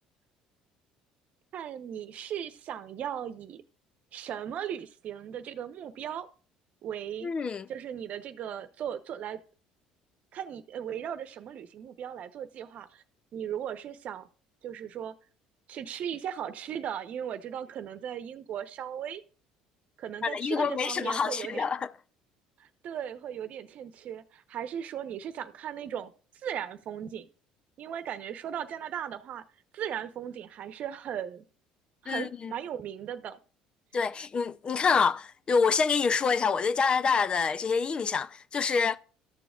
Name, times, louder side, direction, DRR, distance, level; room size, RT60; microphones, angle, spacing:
voice 1, 1.5-3.6 4.1-6.3 6.8-7.3 7.7-9.4 10.3-13.0 13.3-14.3 14.6-15.1 15.7-19.2 20.0-21.7 22.6-26.1 26.4-27.3 27.8-29.4 29.7-31.4 32.0-33.4, right 9 dB, 55° right, 0.9 m, -37 dB
voice 2, 7.2-7.7 20.2-21.9 32.1-32.5 33.9-39.0, left 5 dB, 35° left, 0.5 m, -27 dB
13.5 x 7.1 x 2.4 m
hypercardioid pair, 75°, 3 cm